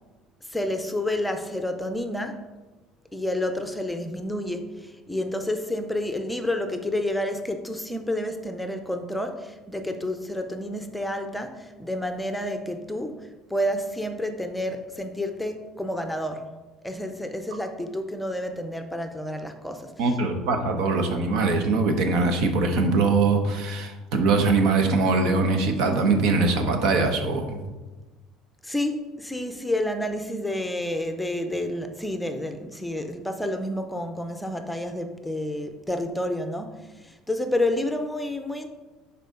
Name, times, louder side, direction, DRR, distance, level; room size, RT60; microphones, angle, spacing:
voice 1, 0.4-2.5 3.1-16.5 16.8-20.2 28.6-38.7, left 1 dB, 5° left, 0.6 m, -29 dB
voice 2, 20.0-27.6, right 3 dB, 70° right, 1.2 m, -22 dB
11.0 x 4.2 x 3.8 m
cardioid pair, 125°, 0 cm